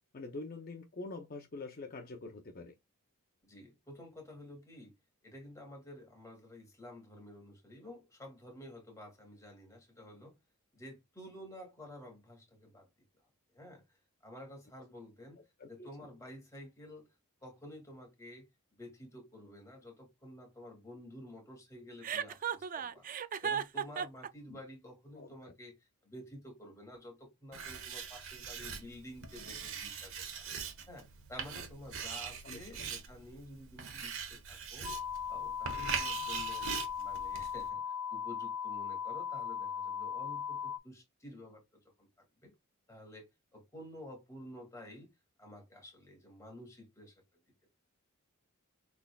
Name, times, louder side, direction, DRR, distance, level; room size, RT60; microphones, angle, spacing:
voice 1, 0.1-2.7 15.6-15.9 24.5-24.6 25.2-25.3 32.4-32.6, left 3 dB, 45° left, 0.6 m, -45 dB
voice 2, 3.4-4.9 5.2-10.3 10.7-12.9 13.5-13.8 14.2-15.4 15.7-17.1 17.4-18.5 18.7-30.4 30.9-34.9 35.3-36.6 36.9-41.6 42.0-42.5 42.9-43.3 43.5-45.1 45.4-47.1, left 1 dB, 15° left, 2.2 m, -51 dB
Chuckle chortle, 22.0-24.3, right 8 dB, 40° right, 0.4 m, -35 dB
Writing, 27.5-37.7, right 6 dB, 65° right, 1.2 m, -42 dB
sound 1, 34.8-40.8, left 8 dB, 70° left, 1.2 m, -38 dB
6.3 x 3.4 x 2.3 m
head